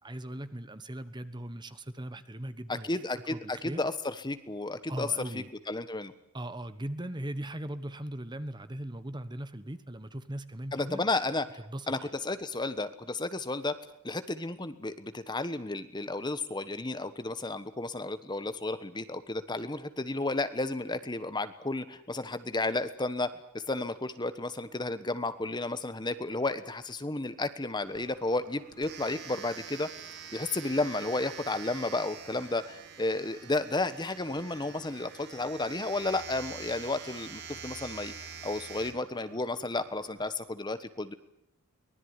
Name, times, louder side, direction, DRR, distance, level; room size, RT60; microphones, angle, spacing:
voice 1, 0.0-2.9 3.3-3.8 4.9-5.5 6.3-11.0 11.7-12.1, right 1 dB, 20° right, 12 dB, 1.2 m, -39 dB
voice 2, 2.7-5.1 5.3-6.1 10.7-11.5 11.9-13.8 14.0-29.9 30.3-41.1, left 2 dB, 20° left, 12 dB, 1.2 m, -32 dB
Domestic sounds home sounds, 27.8-40.3, right 7 dB, 50° right, 2.4 m, -46 dB
24.0 x 19.5 x 9.7 m, 0.75 s
head